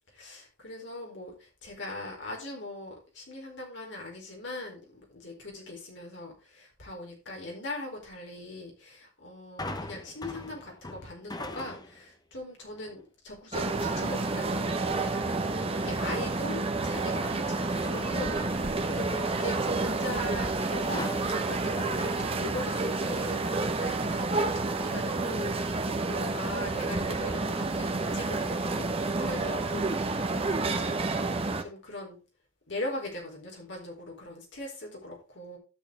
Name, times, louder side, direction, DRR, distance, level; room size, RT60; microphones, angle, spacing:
voice 1, 0.1-29.9 30.2-30.9 31.2-32.2 32.7-35.6, left 2 dB, 65° left, 0 dB, 4.4 m, -40 dB
sound 1, 9.6-12.1 12.6-13.0 15.4-16.1 16.6-19.4 20.9-22.9 23.2-23.3, left 2 dB, 20° left, 0.9 m, -42 dB
sound 2, 13.5-31.6, right 3 dB, 30° right, 1.0 m, -29 dB
13.0 x 6.5 x 3.4 m, 0.31 s
head